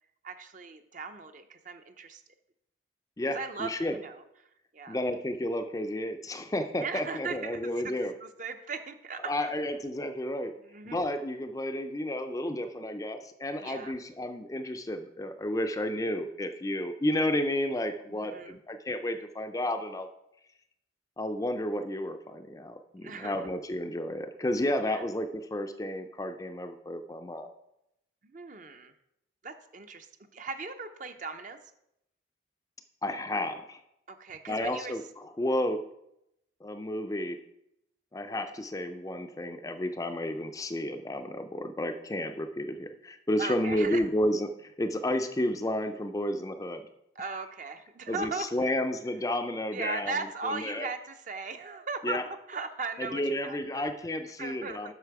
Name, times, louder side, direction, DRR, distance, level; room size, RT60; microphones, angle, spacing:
voice 1, 0.2-2.2 3.3-4.2 4.7-5.0 6.8-9.3 10.6-11.0 13.6-13.9 18.1-18.6 23.0-23.4 24.8-25.0 28.2-28.9 29.4-30.1 30.3-31.6 34.1-35.0 43.4-44.0 47.2-48.8 49.7-53.9 54.4-54.9, right 4 dB, 45° right, 8 dB, 0.6 m, -38 dB
voice 2, 3.2-4.0 4.9-8.1 9.3-10.5 10.8-20.1 21.2-27.5 33.0-33.8 34.5-35.8 36.6-37.4 38.1-46.8 48.1-50.1 50.4-50.9 52.0-52.2 53.0-54.9, left 1 dB, 20° left, 7 dB, 0.4 m, -32 dB
8.2 x 5.9 x 4.7 m, 0.82 s
head